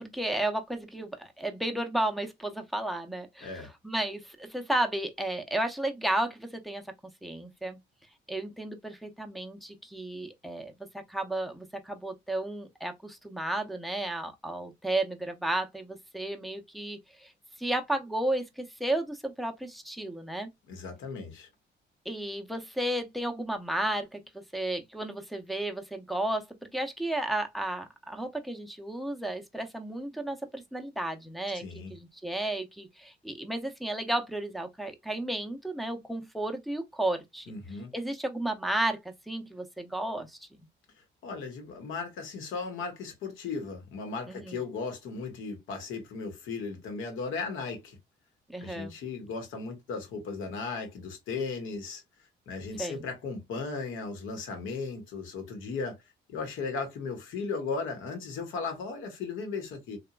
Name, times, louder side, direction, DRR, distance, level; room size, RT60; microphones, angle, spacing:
voice 1, 0.0-6.8 7.2-7.8 8.3-17.3 17.6-20.5 22.1-24.2 24.5-37.5 37.9-40.5 44.3-44.6 48.5-48.9 52.8-53.0, right 1 dB, ahead, 0.5 m, -33 dB
voice 2, 20.7-21.5 31.5-31.9 37.5-37.9 41.2-48.0 48.6-52.0 52.5-56.0 56.3-60.0, left 4 dB, 85° left, 1.0 m, -36 dB
2.9 x 2.2 x 2.3 m
cardioid pair, 90°, 20 cm